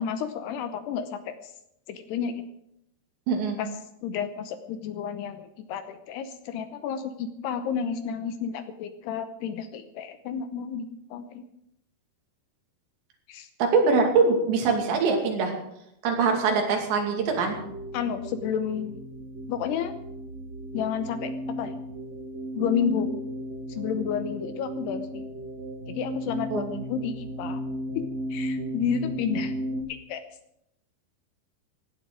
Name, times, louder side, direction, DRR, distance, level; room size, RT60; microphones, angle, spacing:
voice 1, 0.0-1.5 1.9-2.3 3.6-3.7 4.0-10.8 11.1-11.4 13.3-13.5 17.9-19.0 19.5-19.9 20.7-21.7 22.6-23.2 23.7-25.3 25.9-27.6 27.9-28.0 28.3-29.5 29.9-30.2, left 7 dB, 75° left, 10 dB, 2.7 m, -31 dB
voice 2, 3.3-3.6 13.6-15.5 16.0-17.6 26.5-26.8, right 4 dB, 70° right, 2 dB, 4.8 m, -23 dB
sound 1, 17.1-29.8, equal, 40° right, 3.3 m, -35 dB
17.0 x 11.5 x 6.3 m, 0.78 s
omnidirectional pair, 5.3 m